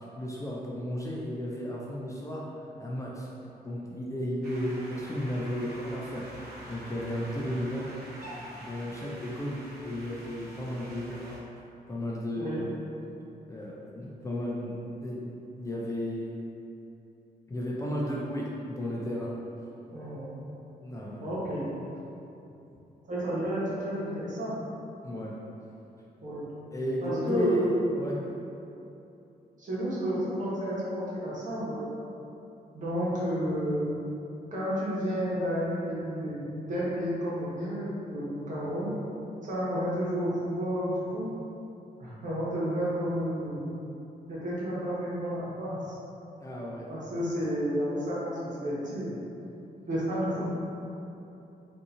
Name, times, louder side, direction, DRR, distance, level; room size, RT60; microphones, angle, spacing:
voice 1, 0.2-2.4 2.8-3.3 3.6-7.9 8.6-11.3 11.9-12.7 13.5-16.3 17.5-19.3 20.8-21.2 25.0-25.4 26.7-27.6 27.9-28.2 46.4-46.9, left 1 dB, 20° left, -4 dB, 0.4 m, -34 dB
sound 1, 4.4-11.4, equal, 80° right, 0.7 m, -46 dB
voice 2, 12.4-12.7 19.9-20.3 21.2-21.7 23.1-24.5 26.2-26.4 27.0-27.8 29.6-31.9 32.7-34.0 34.5-38.9 39.4-41.3 42.0-43.7 44.3-46.0 46.9-49.2 49.9-50.5, equal, 50° right, -8 dB, 1.1 m, -31 dB
3.6 x 2.6 x 2.8 m, 2.8 s
wide cardioid pair, 115°, 16 cm